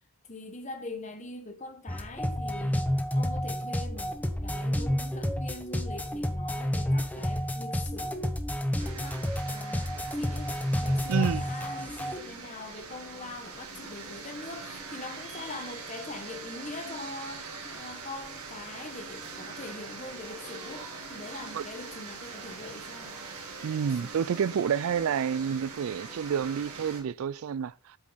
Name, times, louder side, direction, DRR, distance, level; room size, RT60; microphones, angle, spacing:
voice 1, 0.3-2.9 3.1-8.4 8.8-23.2 23.8-24.1, left 2 dB, 30° left, 1.4 m, -43 dB
sound 1, 1.9-12.2, equal, 5° left, 0.8 m, -30 dB
sound 2, 8.8-27.0, right 4 dB, 85° right, 2.8 m, -43 dB
voice 2, 11.1-11.4 21.5-21.6 23.6-28.0, right 7 dB, 70° right, 0.3 m, -29 dB
8.4 x 7.4 x 4.0 m
head